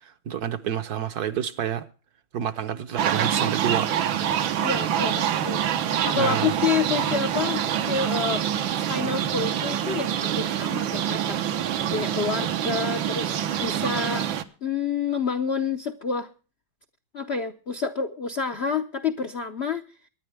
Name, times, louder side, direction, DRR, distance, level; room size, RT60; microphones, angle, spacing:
voice 1, 0.0-1.9 2.3-3.9 4.2-4.3 6.1-6.5, right 9 dB, 60° right, 1.2 m, -29 dB
sound 1, 3.0-14.4, right 10 dB, 80° right, 1.7 m, -26 dB
voice 2, 4.6-8.5 8.7-14.3 14.6-16.3 17.1-19.9, left 5 dB, 60° left, 0.6 m, -29 dB
23.5 x 10.5 x 3.3 m
omnidirectional pair, 2.1 m